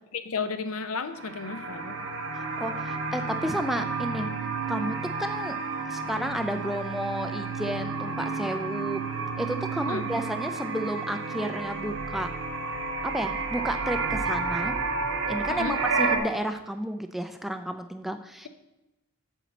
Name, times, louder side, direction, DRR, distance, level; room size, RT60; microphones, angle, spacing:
voice 1, 0.1-2.0 9.9-10.0 15.5-15.8, left 4 dB, 70° left, 10 dB, 0.7 m, -33 dB
sound 1, 1.1-16.2, right 4 dB, 60° right, 1.2 m, -31 dB
voice 2, 2.3-4.3 4.7-5.6 5.9-9.0 9.4-12.3 13.0-14.8 15.2-18.5, equal, ahead, 7 dB, 0.3 m, -32 dB
7.2 x 7.1 x 4.1 m, 0.95 s
head